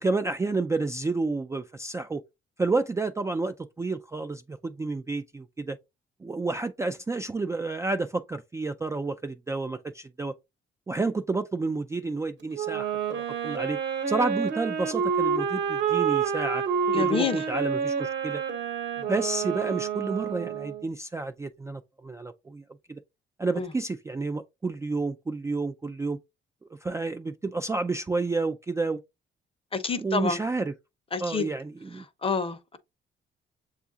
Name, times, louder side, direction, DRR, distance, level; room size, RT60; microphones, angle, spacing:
voice 1, 0.0-2.2 2.6-5.8 6.2-10.3 10.9-13.8 14.1-16.6 16.9-18.4 19.0-22.6 22.9-23.0 23.4-26.2 26.8-29.0 30.0-30.7 31.2-32.1, right 3 dB, 15° right, 0.3 m, -30 dB
Wind instrument woodwind instrument, 12.5-20.9, right 6 dB, 60° right, 1.0 m, -28 dB
voice 2, 16.9-17.4 23.6-23.7 29.7-30.4 31.1-31.5 32.2-32.8, left 5 dB, 30° left, 0.7 m, -28 dB
7.0 x 2.4 x 2.6 m
cardioid pair, 90°, 20 cm